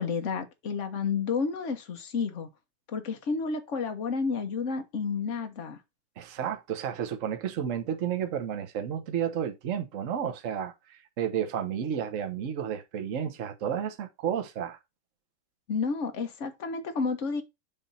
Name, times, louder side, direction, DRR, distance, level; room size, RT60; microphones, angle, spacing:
voice 1, 0.0-2.5 2.9-5.8 15.7-17.4, left 5 dB, 40° left, 1.3 m, -31 dB
voice 2, 6.2-14.8, right 8 dB, 45° right, 1.2 m, -32 dB
7.4 x 3.5 x 5.6 m
omnidirectional pair, 2.3 m